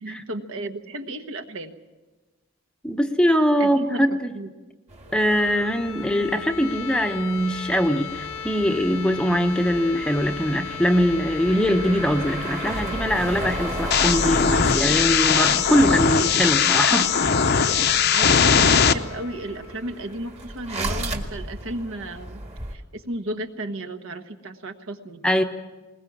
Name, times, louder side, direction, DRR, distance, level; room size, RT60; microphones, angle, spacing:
voice 1, 0.0-1.7 3.6-4.1 4.3-4.5 17.7-22.4 22.7-25.2, right 1 dB, 65° right, 7 dB, 1.3 m, -34 dB
voice 2, 2.8-4.3 5.1-17.1 17.7-17.9 25.2-25.4, equal, 5° left, 6 dB, 0.8 m, -22 dB
sound 1, 4.9-22.7, right 1 dB, 30° right, 1.7 m, -35 dB
sound 2, 5.1-20.8, left 8 dB, 85° left, 1.2 m, -36 dB
sound 3, 13.9-18.9, left 6 dB, 45° left, 0.7 m, -19 dB
21.0 x 20.5 x 7.3 m, 1.2 s
head